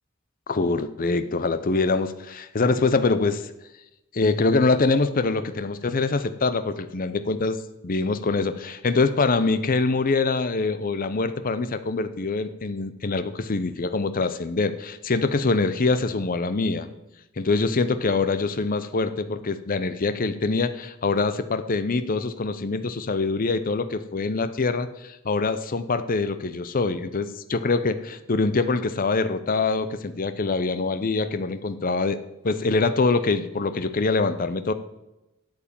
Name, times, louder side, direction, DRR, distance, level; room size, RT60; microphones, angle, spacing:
voice 1, 0.5-3.5 4.1-7.6 7.8-16.9 17.4-32.2 32.4-34.7, left 3 dB, 45° left, 11 dB, 0.7 m, -24 dB
8.5 x 8.1 x 7.0 m, 0.94 s
head